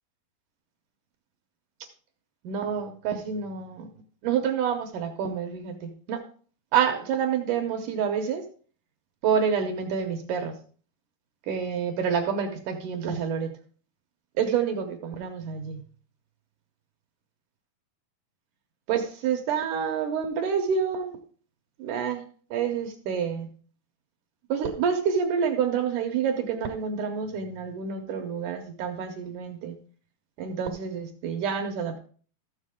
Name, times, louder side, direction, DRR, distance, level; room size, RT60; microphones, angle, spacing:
voice 1, 2.4-3.9 4.2-6.2 6.7-8.4 9.2-10.5 11.5-13.5 14.4-15.8 18.9-21.2 21.8-22.2 22.5-23.5 24.5-29.8 30.4-32.0, right 7 dB, 70° right, 5 dB, 2.0 m, -28 dB
13.5 x 7.5 x 3.6 m, 0.42 s
omnidirectional pair, 4.5 m